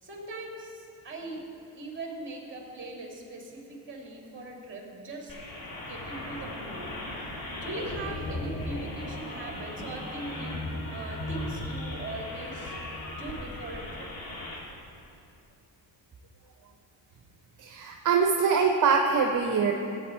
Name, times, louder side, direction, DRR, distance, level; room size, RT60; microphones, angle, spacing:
voice 1, 0.0-5.4 5.8-7.0 7.6-12.8 13.1-14.1, right 2 dB, 30° right, 0 dB, 2.4 m, -40 dB
sound 1, 5.3-14.6, left 1 dB, 60° left, 2.5 m, -37 dB
voice 2, 17.6-19.7, right 5 dB, 50° right, 3 dB, 0.9 m, -23 dB
16.0 x 8.6 x 4.4 m, 2.7 s
cardioid pair, 105°, 40 cm